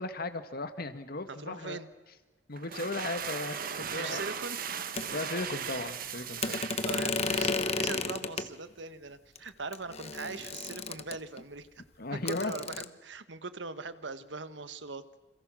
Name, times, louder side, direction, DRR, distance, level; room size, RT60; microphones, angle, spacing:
voice 1, 0.0-1.8 2.5-4.2 5.1-6.6 12.0-12.5, left 2 dB, 55° left, 10 dB, 1.8 m, -36 dB
voice 2, 1.3-1.9 3.9-4.6 5.6-5.8 6.5-11.7 12.1-15.0, right 4 dB, 75° right, 12 dB, 1.5 m, -41 dB
sound 1, 2.5-8.1, right 7 dB, 50° right, 1.5 m, -38 dB
sound 2, 5.0-5.1 6.4-8.5 9.4-9.5 9.7-11.4 12.3-12.9, left 4 dB, 35° left, 1.2 m, -33 dB
29.0 x 27.0 x 6.4 m, 1.1 s
head